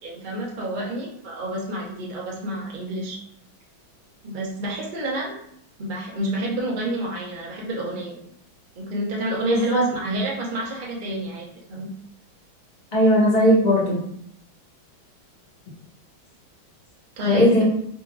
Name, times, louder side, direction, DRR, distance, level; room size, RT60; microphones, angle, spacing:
voice 1, 0.0-3.2 4.2-5.3 5.8-8.3 8.7-11.9 17.2-17.6, right 1 dB, 55° right, -4 dB, 0.5 m, -29 dB
voice 2, 9.5-9.8 12.9-14.0 17.2-17.6, equal, 30° left, -6 dB, 1.1 m, -18 dB
4.5 x 2.8 x 2.3 m, 0.69 s
omnidirectional pair, 2.2 m